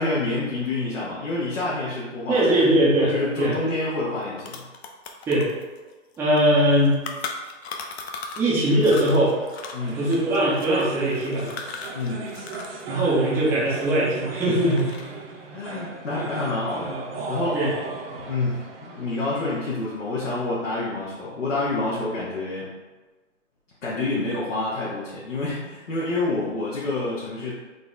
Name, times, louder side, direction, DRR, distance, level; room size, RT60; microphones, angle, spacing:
voice 1, 0.0-2.5 3.1-4.6 9.7-10.0 11.9-12.3 15.5-16.9 17.3-17.6 18.3-22.7 23.8-27.5, left 2 dB, 80° left, -7 dB, 1.1 m, -28 dB
voice 2, 2.3-3.1 3.4-3.5 5.3-5.5 6.2-7.0 8.4-9.3 9.9-11.6 12.9-14.9 17.5-17.7, right 1 dB, 5° right, -6 dB, 0.4 m, -20 dB
sound 1, 3.8-3.9 4.1-8.5 8.8-12.8 13.1-14.3 14.6-15.2, left 5 dB, 55° left, 0.6 m, -37 dB
sound 2, 9.0-19.7, right 3 dB, 50° right, 0.7 m, -37 dB
3.9 x 2.1 x 3.8 m, 1.2 s
hypercardioid pair, 130°, 37 cm